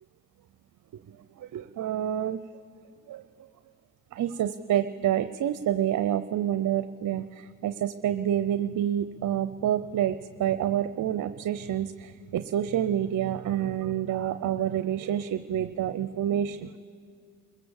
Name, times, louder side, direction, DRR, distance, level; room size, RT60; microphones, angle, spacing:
voice 1, 1.4-2.4 3.1-3.2 4.1-16.8, right 10 dB, 65° right, 12 dB, 0.6 m, -28 dB
28.5 x 16.0 x 7.2 m, 2.3 s
supercardioid pair, 55°, 33 cm